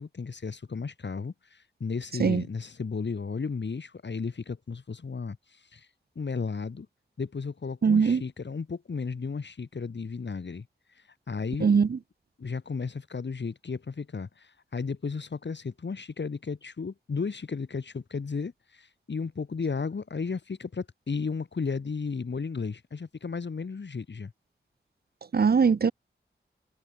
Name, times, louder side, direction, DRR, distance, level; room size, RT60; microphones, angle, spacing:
voice 1, 0.0-5.4 5.7-5.9 6.1-6.9 7.2-10.7 11.3-11.7 12.4-24.3, left 5 dB, 65° left, 3.2 m, -34 dB
voice 2, 7.8-8.2 11.6-12.0 25.3-25.9, right 5 dB, 55° right, 0.7 m, -21 dB
wide cardioid pair, 65°, 20 cm